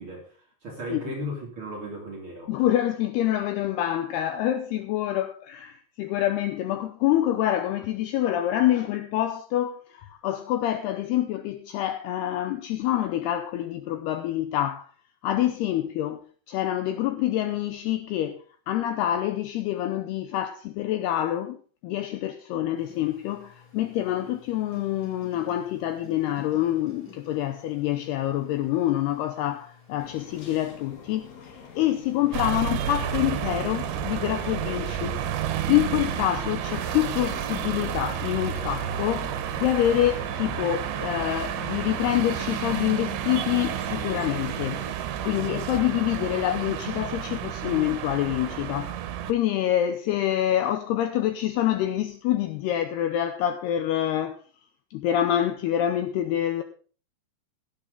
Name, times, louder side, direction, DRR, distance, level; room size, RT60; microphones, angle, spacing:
voice 1, 0.0-2.5, equal, 35° right, 2.7 m, -36 dB
voice 2, 2.5-14.9 15.2-21.6 21.8-35.2 35.7-44.8 45.2-49.0 49.3-54.4 54.9-56.6, left 12 dB, 80° left, 2.4 m, -26 dB
sound 1, 22.8-30.7, left 2 dB, 25° left, 4.9 m, -52 dB
sound 2, 30.0-44.9, left 6 dB, 50° left, 2.2 m, -45 dB
sound 3, 32.3-49.3, right 10 dB, 75° right, 3.2 m, -31 dB
16.5 x 9.7 x 3.9 m
omnidirectional pair, 5.4 m